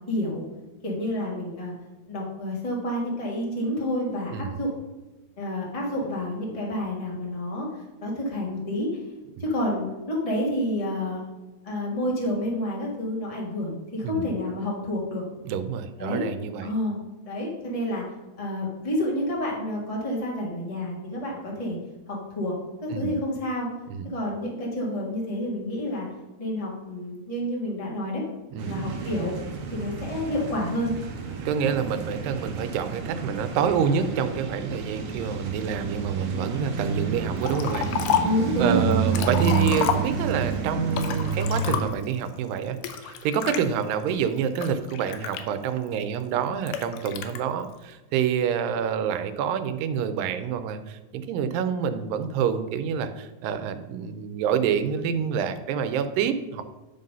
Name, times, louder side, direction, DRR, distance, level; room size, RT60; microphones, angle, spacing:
voice 1, 0.1-0.4 0.8-1.7 2.1-4.7 5.4-9.0 9.4-11.2 11.6-15.2 16.0-16.2 16.6-17.0 17.2-18.0 18.4-21.8 22.1-22.5 22.8-23.7 24.0-26.1 26.4-28.2 28.6-29.3 29.7-30.9 38.2-39.1, left 1 dB, 65° left, -3 dB, 0.3 m, -29 dB
voice 2, 15.4-16.7 22.9-23.1 24.0-24.1 28.5-28.9 31.5-37.9 38.6-56.6, right 7 dB, 90° right, 10 dB, 2.3 m, -27 dB
sound 1, 28.6-41.9, right 6 dB, 70° right, 1.3 m, -30 dB
Liquid, 37.4-38.4 38.9-40.4 40.9-42.1 42.8-43.6 44.2-45.9 46.7-47.4, left 9 dB, 85° left, 2.4 m, -29 dB
9.9 x 3.9 x 5.4 m, 1.1 s
omnidirectional pair, 3.9 m